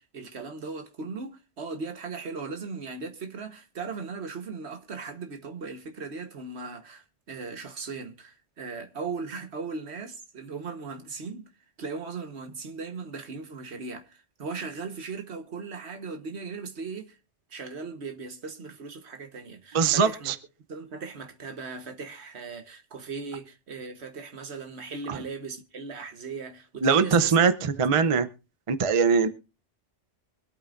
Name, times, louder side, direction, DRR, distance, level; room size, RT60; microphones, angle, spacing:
voice 1, 0.0-11.5 11.8-17.2 17.5-20.3 20.7-27.4 27.7-28.2, right 4 dB, 70° right, 1.5 m, -38 dB
voice 2, 19.7-20.3 25.1-25.2 26.8-27.5 27.8-28.3 28.7-29.3, right 5 dB, 35° right, 0.6 m, -21 dB
24.0 x 8.6 x 2.5 m
omnidirectional pair, 1.2 m